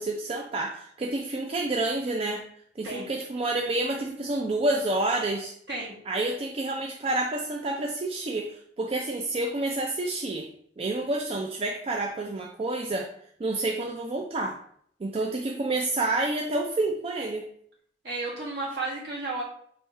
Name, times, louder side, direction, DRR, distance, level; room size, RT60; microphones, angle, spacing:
voice 1, 0.0-2.4 2.8-5.5 6.1-10.5 10.8-13.1 13.4-14.6 15.0-17.4, right 2 dB, 35° right, 1 dB, 0.4 m, -29 dB
voice 2, 18.0-19.4, right 2 dB, 65° right, -4 dB, 1.6 m, -32 dB
3.4 x 2.6 x 4.4 m, 0.64 s
head